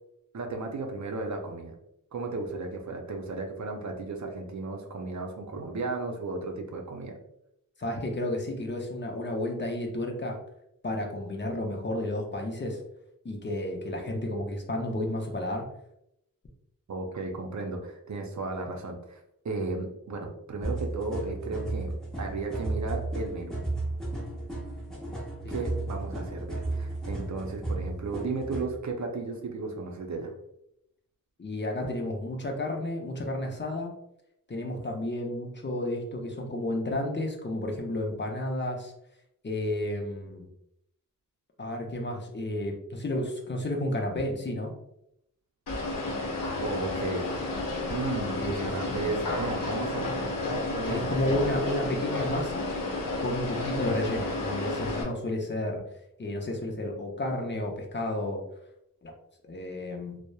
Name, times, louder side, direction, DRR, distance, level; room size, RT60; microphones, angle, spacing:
voice 1, 0.3-1.7 2.1-7.1 16.9-21.9 22.2-23.6 25.5-30.3 46.6-47.3 47.9-50.1 50.7-51.2, right 3 dB, 55° right, 3 dB, 0.5 m, -34 dB
voice 2, 7.8-10.4 10.8-12.8 13.2-15.6 25.4-25.6 31.4-33.9 34.5-38.9 39.4-40.5 41.6-44.7 48.3-49.1 50.8-52.7 53.2-55.8 56.2-58.4 59.0-59.1 59.4-60.2, left 1 dB, 35° left, 0 dB, 0.5 m, -32 dB
sound 1, 20.6-28.7, right 2 dB, ahead, 0.8 m, -34 dB
sound 2, 45.7-55.0, left 2 dB, 65° left, 0.7 m, -31 dB
2.9 x 2.0 x 2.2 m, 0.79 s
wide cardioid pair, 70°, 35 cm